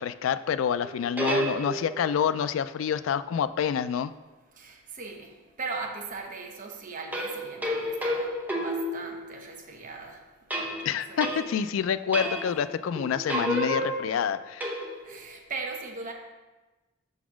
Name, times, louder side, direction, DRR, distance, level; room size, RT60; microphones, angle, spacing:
voice 1, 0.0-4.1 10.9-14.7, left 7 dB, 85° left, 14 dB, 0.3 m, -27 dB
sound 1, 0.8-2.1 7.1-9.6 10.5-11.7 12.1-12.7 13.0-15.2, equal, 10° right, 0.8 m, -31 dB
voice 2, 4.6-5.3 5.6-10.2 10.6-11.5 12.2-12.6 15.0-16.1, right 3 dB, 45° right, 2 dB, 0.9 m, -39 dB
5.9 x 4.0 x 6.1 m, 1.2 s
head